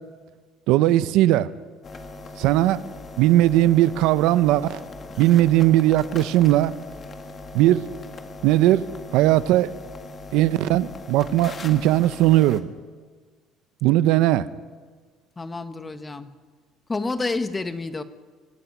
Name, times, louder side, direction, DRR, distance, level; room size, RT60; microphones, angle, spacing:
voice 1, 0.7-1.5 2.4-2.8 3.2-4.8 5.2-6.7 7.5-7.8 8.4-8.8 9.1-9.7 10.3-12.7 13.8-14.5, right 14 dB, 75° right, 15 dB, 0.7 m, -18 dB
sound 1, 1.8-12.6, left 2 dB, 35° left, 2.0 m, -40 dB
voice 2, 15.4-16.3 16.9-18.0, left 3 dB, 20° left, 10 dB, 1.3 m, -29 dB
24.5 x 11.5 x 9.3 m, 1.5 s
cardioid pair, 105°, 0 cm